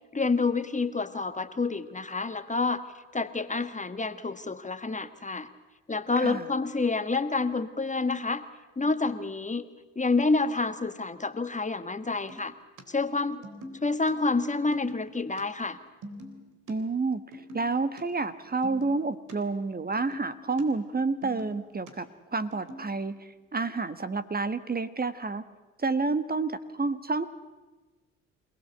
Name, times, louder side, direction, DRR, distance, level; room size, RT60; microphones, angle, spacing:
voice 1, 0.1-2.9 3.1-5.5 5.9-8.4 8.8-9.7 9.9-12.5 12.9-13.4 13.8-15.8, left 3 dB, 20° left, 10 dB, 1.5 m, -28 dB
sound 1, 12.1-12.8 13.1-14.1 14.4-15.4 15.7-16.7 17.2-18.0 18.3-19.3 19.6-20.6 20.9-21.9 22.5-22.9, equal, 60° right, 3.9 m, -45 dB
voice 2, 16.7-22.1 22.3-25.4 25.8-27.3, right 3 dB, 25° right, 12 dB, 1.6 m, -29 dB
27.5 x 18.0 x 8.2 m, 1.2 s
hypercardioid pair, 50°, 36 cm